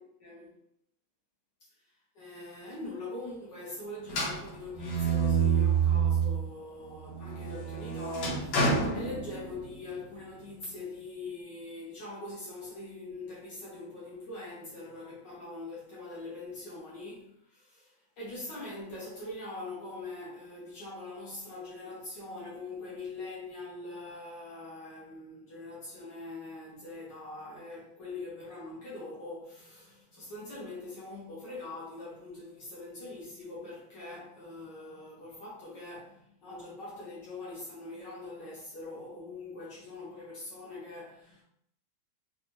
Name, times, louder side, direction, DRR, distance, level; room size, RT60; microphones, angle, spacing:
voice 1, 0.2-0.6 2.1-41.4, left 2 dB, 70° left, 1.5 m, -43 dB
sound 1, 4.1-6.5 6.9-9.8, right 5 dB, 90° left, 1.6 m, -28 dB
4.0 x 2.2 x 2.9 m
omnidirectional pair, 2.0 m